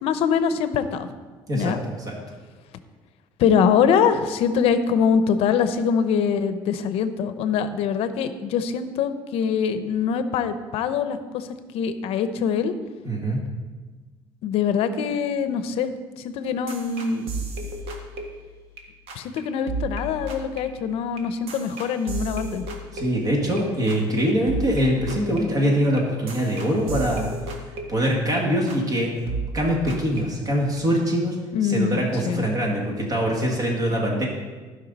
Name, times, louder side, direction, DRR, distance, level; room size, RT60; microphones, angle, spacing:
voice 1, 0.0-1.1 1.5-1.8 3.4-11.5 11.7-12.7 14.4-15.9 16.2-17.3 19.2-22.6 31.5-32.0 32.2-32.5, left 7 dB, 75° left, 11 dB, 0.7 m, -23 dB
voice 2, 1.5-2.2 13.1-13.4 22.9-27.3 27.9-29.1 29.5-31.4 31.6-34.3, equal, 35° right, -1 dB, 2.0 m, -23 dB
sound 1, 16.7-18.8 19.1-19.4 19.7-23.6 23.9-24.2 24.5-28.4 28.7-29.0 29.3-30.8, right 2 dB, 70° right, 1.5 m, -34 dB
15.5 x 5.6 x 4.0 m, 1.3 s
cardioid pair, 150°, 10 cm